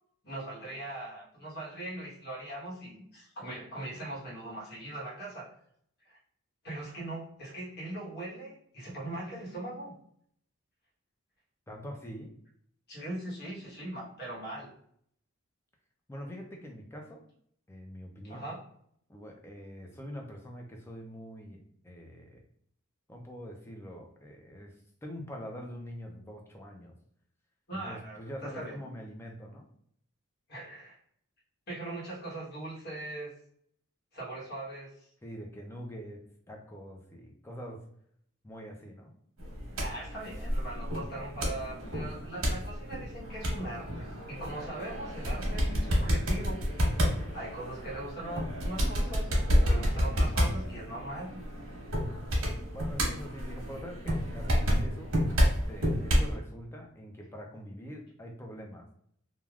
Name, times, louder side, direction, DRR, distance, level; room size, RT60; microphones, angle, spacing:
voice 1, 0.2-5.5 6.1-6.2 6.6-9.9 12.9-14.7 18.2-18.6 27.7-28.8 30.5-31.0 31.7-33.3 34.1-35.1 39.7-46.6 47.3-51.4, right 1 dB, 50° left, -5 dB, 1.2 m, -40 dB
voice 2, 11.7-12.3 16.1-17.2 17.7-18.5 19.1-21.6 21.8-22.4 23.1-26.9 27.7-29.7 35.2-37.8 38.4-39.1 52.7-55.1 55.7-58.9, equal, 10° left, 1 dB, 0.4 m, -44 dB
sound 1, 39.4-56.3, equal, 75° right, 1.0 m, -30 dB
3.3 x 2.3 x 2.3 m, 0.66 s
head